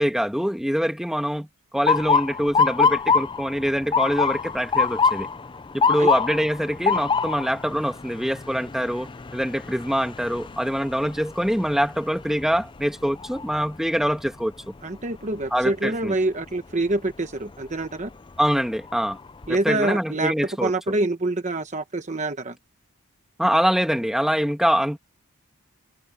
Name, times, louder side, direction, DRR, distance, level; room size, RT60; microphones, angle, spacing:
voice 1, 0.0-1.5 1.7-5.3 5.7-14.7 15.5-16.1 18.4-19.2 19.7-20.7 23.4-25.0, equal, ahead, 1.8 m, -24 dB
Motor vehicle (road) / Siren, 1.9-13.8 14.2-14.7 15.4-15.7 17.6-17.9 18.4-18.5 18.9-19.6, left 5 dB, 20° left, 0.4 m, -25 dB
voice 2, 14.8-18.1 19.5-20.3 20.6-22.6, right 2 dB, 35° right, 1.1 m, -26 dB
head